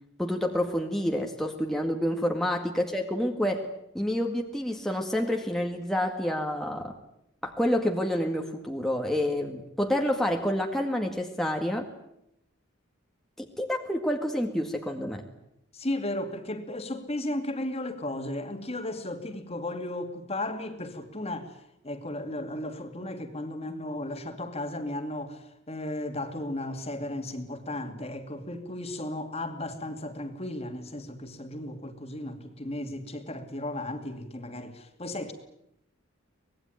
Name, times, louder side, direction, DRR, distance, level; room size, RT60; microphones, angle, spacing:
voice 1, 0.2-3.7 3.9-6.9 7.4-11.8 13.4-15.2, left 1 dB, ahead, 1.9 m, -28 dB
voice 2, 15.7-35.3, left 1 dB, 30° left, 2.5 m, -35 dB
24.5 x 20.5 x 9.3 m
head